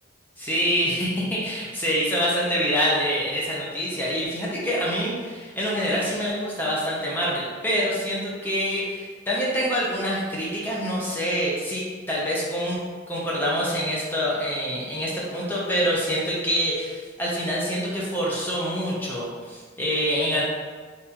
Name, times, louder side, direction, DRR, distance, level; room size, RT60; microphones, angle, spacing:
voice 1, 0.4-12.8 13.1-20.4, equal, 10° left, -6 dB, 0.6 m, -26 dB
3.4 x 2.6 x 2.9 m, 1.5 s
head